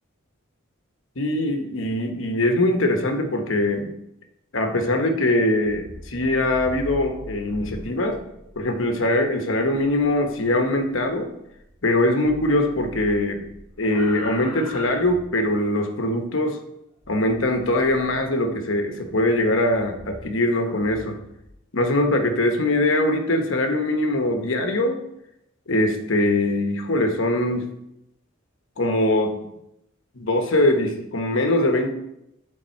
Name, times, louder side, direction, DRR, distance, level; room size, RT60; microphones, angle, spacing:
voice 1, 1.2-3.9 4.5-8.2 8.6-11.3 11.8-13.5 13.8-16.6 17.1-21.2 21.7-25.0 25.7-27.7 28.8-29.4 30.2-31.9, left 1 dB, 65° left, 4 dB, 1.1 m, -22 dB
sound 1, 5.5-12.0 12.2-15.6 17.0-18.3 18.9-21.6, left 1 dB, ahead, 3.2 m, -42 dB
10.5 x 4.1 x 4.4 m, 0.84 s
head